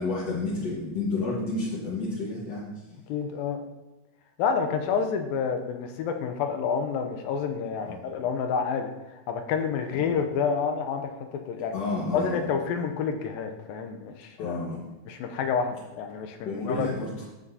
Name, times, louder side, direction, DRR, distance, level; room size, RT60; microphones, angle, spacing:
voice 1, 0.0-2.7 7.8-8.0 10.0-10.2 11.7-12.4 14.4-14.8 16.4-17.1, left 3 dB, 55° left, -7 dB, 2.0 m, -30 dB
voice 2, 3.1-3.6 4.4-11.7 12.1-14.6 15.1-16.9, left 6 dB, 80° left, 6 dB, 2.2 m, -29 dB
12.0 x 7.6 x 2.7 m, 1.1 s
omnidirectional pair, 4.6 m